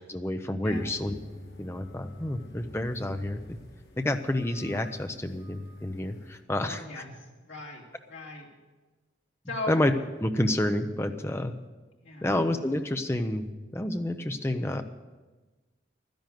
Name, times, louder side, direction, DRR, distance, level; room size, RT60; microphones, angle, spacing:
voice 1, 0.1-1.1 1.6-3.6 4.0-6.8 9.7-9.9 10.2-11.5 12.2-14.8, left 1 dB, 15° left, 7 dB, 0.7 m, -29 dB
sound 1, 0.6-6.4, left 1 dB, 55° left, 2.5 m, -47 dB
voice 2, 6.6-8.5 9.5-9.8 12.0-12.3, left 2 dB, 80° left, -1 dB, 2.9 m, -39 dB
12.0 x 10.5 x 7.7 m, 1.2 s
head